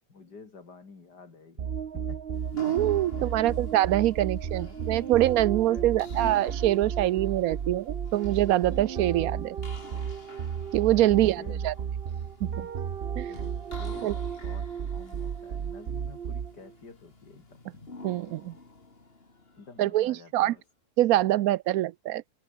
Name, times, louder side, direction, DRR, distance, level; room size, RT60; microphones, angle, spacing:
voice 1, 0.1-1.7 1.9-2.2 2.9-3.5 5.7-6.0 10.9-11.7 12.5-12.7 13.3-17.6 19.6-20.6, left 4 dB, 80° left, 3.6 m, -49 dB
sound 1, 1.6-16.7, right 7 dB, 45° right, 0.9 m, -33 dB
sound 2, 2.3-20.2, left 3 dB, 35° left, 2.9 m, -49 dB
voice 2, 2.6-9.6 10.7-11.7 12.4-12.7 13.2-13.3 14.0-14.1 18.0-18.5 19.8-20.5 21.0-22.2, right 14 dB, 70° right, 0.9 m, -24 dB
omnidirectional pair, 1.8 m